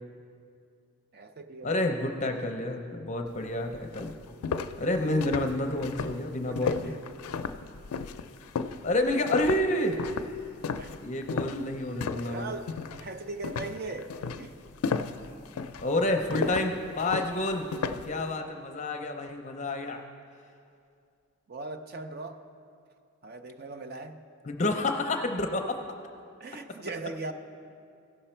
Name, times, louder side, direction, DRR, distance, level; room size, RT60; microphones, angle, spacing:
voice 1, 1.1-2.5 6.5-6.9 10.8-11.0 12.2-14.6 21.5-22.4 23.2-24.3 26.4-27.3, right 3 dB, 45° right, 7 dB, 0.5 m, -40 dB
voice 2, 1.6-4.1 4.8-7.0 8.8-10.0 11.0-12.5 15.8-17.7 18.1-20.0 24.4-25.7, left 1 dB, 35° left, 4 dB, 0.5 m, -29 dB
sound 1, 3.4-3.5 3.9-12.4 12.7-13.1 13.4-18.1, left 5 dB, 90° left, 0.4 m, -34 dB
16.0 x 6.0 x 4.4 m, 2.4 s
head